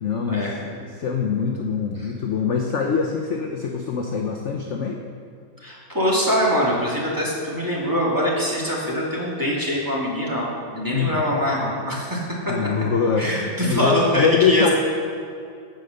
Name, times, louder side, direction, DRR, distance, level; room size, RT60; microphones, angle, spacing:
voice 1, 0.0-5.0 10.9-11.2 12.5-13.3 13.6-14.7, left 6 dB, 60° left, 1 dB, 0.7 m, -24 dB
voice 2, 5.6-12.7 13.2-14.7, equal, 10° right, -5 dB, 2.4 m, -23 dB
16.0 x 5.5 x 6.5 m, 2.5 s
omnidirectional pair, 2.2 m